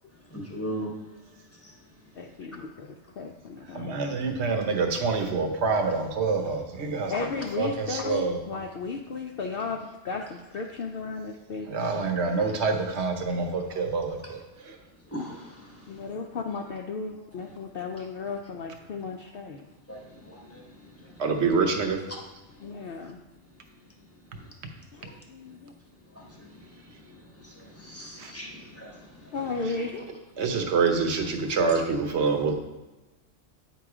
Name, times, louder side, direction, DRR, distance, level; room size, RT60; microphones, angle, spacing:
voice 1, 0.3-0.9 1.6-1.7 15.1-16.1 19.9-21.2 24.4-24.5 25.1-25.2 26.1-29.4 30.4-30.5, equal, 15° left, -1 dB, 1.0 m, -40 dB
voice 2, 2.2-2.9 3.2-4.2 7.1-11.7 15.9-19.6 22.6-23.2 24.9-25.7 29.3-30.1 32.3-32.5, left 4 dB, 60° left, 2 dB, 0.6 m, -35 dB
voice 3, 3.7-7.1 7.6-8.4 11.7-14.8 21.2-22.0 28.2-28.3 30.4-32.5, right 4 dB, 65° right, 5 dB, 1.1 m, -26 dB
8.8 x 3.0 x 4.8 m, 1.1 s
omnidirectional pair, 1.3 m